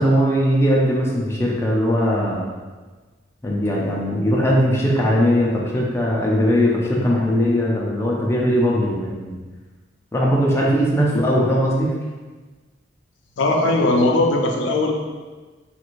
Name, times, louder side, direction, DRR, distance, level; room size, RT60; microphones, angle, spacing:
voice 1, 0.0-2.5 3.4-9.4 10.1-11.9, equal, 15° left, -4 dB, 0.5 m, -19 dB
voice 2, 11.1-11.4 13.4-14.9, left 2 dB, 75° left, 1 dB, 0.4 m, -19 dB
3.2 x 2.5 x 3.0 m, 1.3 s
head